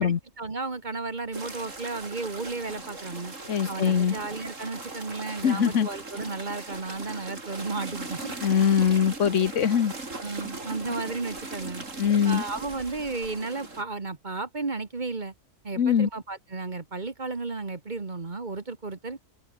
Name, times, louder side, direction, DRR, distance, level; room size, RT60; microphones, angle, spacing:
voice 1, 0.0-3.3 3.7-8.3 10.2-11.8 12.2-15.3 15.6-19.2, right 3 dB, 35° right, 1.7 m, -33 dB
sound 1, 1.3-13.8, right 3 dB, 65° right, 4.4 m, -39 dB
voice 2, 3.5-4.1 5.4-5.9 8.4-9.9 12.0-12.4 15.8-16.1, left 8 dB, 65° left, 1.5 m, -22 dB
omnidirectional pair, 1.4 m